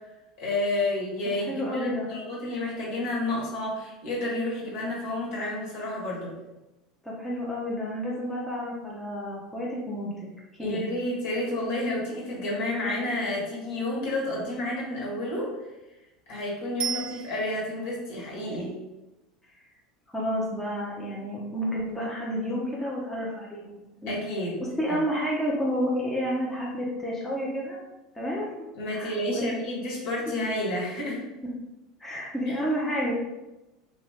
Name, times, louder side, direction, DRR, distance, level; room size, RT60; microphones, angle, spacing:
voice 1, 0.4-6.4 10.6-15.5 16.3-18.7 24.1-24.6 24.9-25.0 28.8-31.2 32.4-32.5, left 1 dB, 55° left, -5 dB, 1.5 m, -30 dB
voice 2, 1.4-2.1 7.0-10.1 10.6-10.9 20.1-24.1 24.6-27.8 28.1-28.6 28.9-29.5 32.0-33.1, equal, 5° left, -5 dB, 0.8 m, -30 dB
Bicycle bell, 16.8-17.9 27.0-27.1, right 7 dB, 30° right, 0.4 m, -34 dB
3.0 x 2.6 x 3.4 m, 1.0 s
figure-of-eight pair, 80°, 3 cm